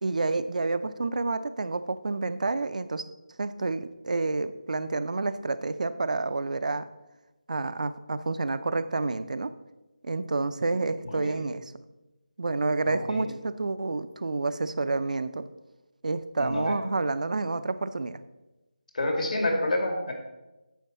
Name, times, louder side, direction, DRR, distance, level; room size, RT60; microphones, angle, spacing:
voice 1, 0.0-3.0 3.4-6.9 7.5-9.5 10.0-11.6 12.4-15.4 16.0-18.2, right 3 dB, 60° right, 13 dB, 0.5 m, -29 dB
voice 2, 11.1-11.5 12.9-13.3 16.4-16.8 18.9-20.1, left 1 dB, 60° left, 2 dB, 2.2 m, -28 dB
9.3 x 6.5 x 4.1 m, 1.0 s
figure-of-eight pair, 165°, 5 cm